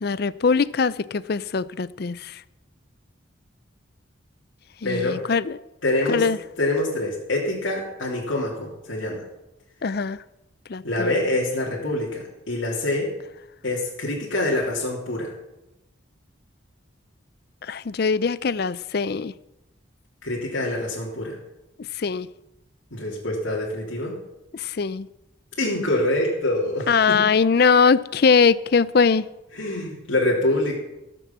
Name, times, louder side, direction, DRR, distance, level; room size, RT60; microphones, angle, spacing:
voice 1, 0.0-2.4 4.8-5.6 6.1-6.4 9.8-10.2 10.7-11.1 17.6-19.3 21.8-22.3 24.5-25.1 26.9-29.3, left 5 dB, 50° left, 0.4 m, -21 dB
voice 2, 4.8-5.2 5.8-6.2 6.6-9.2 10.8-13.1 13.6-15.3 20.2-21.4 22.9-24.2 25.6-27.3 29.6-30.8, left 1 dB, 70° left, 3.0 m, -25 dB
17.0 x 6.9 x 7.3 m
head